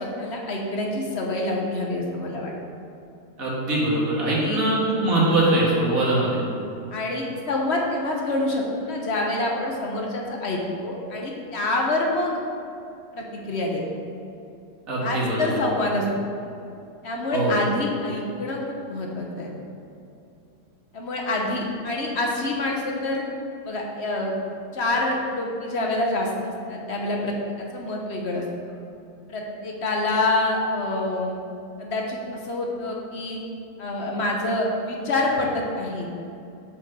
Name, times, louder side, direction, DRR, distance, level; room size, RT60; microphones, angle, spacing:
voice 1, 0.0-2.5 4.4-4.6 5.3-5.8 6.9-12.4 13.1-13.8 15.0-16.1 17.0-19.5 20.9-23.2 23.6-24.4 24.7-28.8 29.3-31.4 31.8-33.4 33.8-36.1, left 2 dB, 45° left, -1 dB, 0.9 m, -27 dB
voice 2, 3.4-6.4 14.9-15.5 17.3-17.6, right 2 dB, 45° right, -6 dB, 2.2 m, -22 dB
7.1 x 5.2 x 6.1 m, 2.6 s
omnidirectional pair, 2.2 m